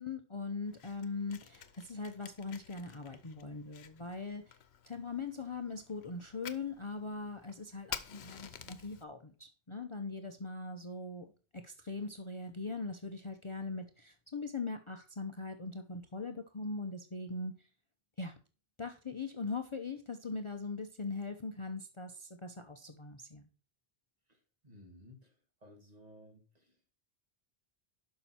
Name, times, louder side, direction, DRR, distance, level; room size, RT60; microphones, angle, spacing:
voice 1, 0.0-4.6 4.9-17.7 18.2-18.3 18.8-23.5, left 3 dB, 30° left, 6 dB, 0.8 m, -41 dB
Fire, 0.6-9.0, left 8 dB, 80° left, 1.1 m, -50 dB
voice 2, 24.6-25.3 25.6-26.7, left 1 dB, 40° right, 3 dB, 2.0 m, -56 dB
11.5 x 5.7 x 4.3 m, 0.36 s
omnidirectional pair, 1.1 m